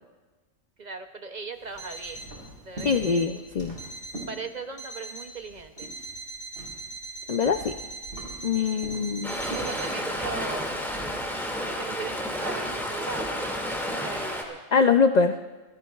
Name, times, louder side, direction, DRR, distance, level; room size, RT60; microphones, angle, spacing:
voice 1, 0.8-2.3 2.6-3.4 4.3-5.9 8.5-8.9 9.4-10.9 11.7-13.5 13.9-14.6, right 4 dB, 45° right, 7 dB, 0.7 m, -38 dB
sound 1, 1.6-4.9 5.2-11.5, right 1 dB, 80° right, 4.3 m, -44 dB
Alarm, 1.8-2.4 2.8-3.4 3.8-4.4 4.8-5.4 5.8-9.9, right 3 dB, 45° left, 2.3 m, -40 dB
voice 2, 2.8-3.8 7.3-7.7 8.4-9.4 14.7-15.4, left 5 dB, 80° left, 8 dB, 0.3 m, -23 dB
Stream, 9.2-14.4, equal, ahead, 2.1 m, -31 dB
26.0 x 17.0 x 2.4 m, 1.3 s
omnidirectional pair, 1.3 m